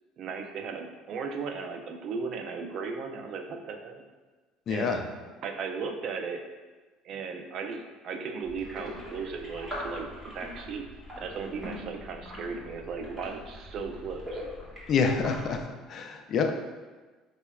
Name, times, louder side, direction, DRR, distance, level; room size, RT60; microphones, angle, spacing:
voice 1, 0.2-4.0 4.7-6.4 7.0-10.9 11.2-14.4, right 5 dB, 55° right, 5 dB, 0.4 m, -36 dB
voice 2, 4.7-5.0 14.9-16.5, left 5 dB, 50° left, 4 dB, 0.4 m, -27 dB
sound 1, 8.4-15.6, equal, 15° right, 1.4 m, -42 dB
5.5 x 2.1 x 2.3 m, 1.3 s
supercardioid pair, 90°, 0 cm